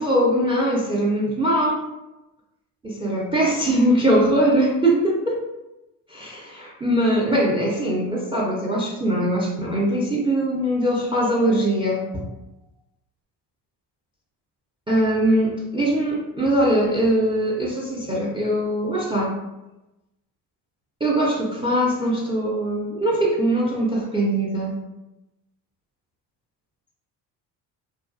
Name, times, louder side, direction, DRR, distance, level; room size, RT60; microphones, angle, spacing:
voice 1, 0.0-1.9 2.8-5.4 6.1-12.3 14.9-19.3 21.0-24.8, right 1 dB, 10° right, -3 dB, 0.3 m, -21 dB
2.4 x 2.2 x 2.4 m, 0.99 s
supercardioid pair, 70°, 50 cm